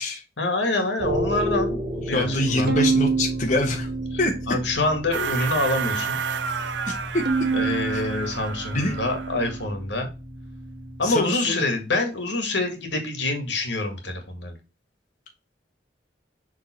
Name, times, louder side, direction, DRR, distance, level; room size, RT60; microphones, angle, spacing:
voice 1, 0.4-2.8 4.5-6.2 7.5-10.1 11.0-14.5, left 2 dB, 85° left, 5 dB, 1.9 m, -26 dB
sound 1, 1.0-11.2, equal, 35° right, 2.3 m, -33 dB
voice 2, 2.1-3.9 4.2-4.3 6.9-7.2 7.9-8.1 8.7-8.9 11.0-11.6, left 1 dB, 45° left, 1 dB, 1.0 m, -25 dB
Bowed string instrument, 2.7-5.0 5.5-6.3 7.3-9.8, right 4 dB, 65° right, 1.0 m, -28 dB
sound 2, 5.1-9.6, right 6 dB, 85° right, 0.7 m, -31 dB
6.4 x 3.7 x 4.4 m, 0.29 s
head